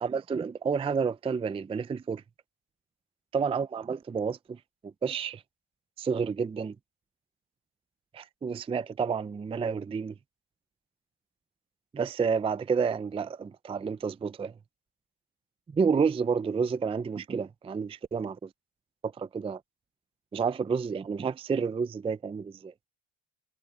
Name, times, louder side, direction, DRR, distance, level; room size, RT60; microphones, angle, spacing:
voice 1, 0.0-2.2 3.3-5.4 6.0-6.8 8.1-10.1 11.9-14.5 15.7-18.5 19.0-19.6 20.3-22.7, right 5 dB, 15° right, 0.4 m, -30 dB
cardioid pair, 110°, 42 cm